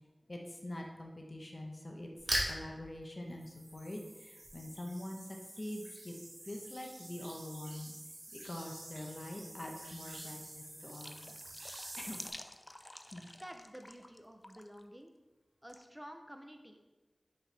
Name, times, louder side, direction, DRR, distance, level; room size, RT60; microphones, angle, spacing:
voice 1, 0.3-2.1 2.5-6.1 6.4-7.9 8.3-11.4 12.0-12.2 13.1-13.3, left 1 dB, 45° left, 1 dB, 0.9 m, -44 dB
sound 1, 2.1-2.7 3.3-12.3, right 1 dB, 80° right, 1.4 m, -44 dB
sound 2, 10.9-14.2 14.4-14.8 15.7-15.8, left 1 dB, 20° left, 0.4 m, -51 dB
voice 2, 13.4-15.1 15.6-16.8, equal, 10° right, 5 dB, 0.7 m, -50 dB
5.7 x 5.5 x 3.4 m, 1.1 s
wide cardioid pair, 60°, 0 cm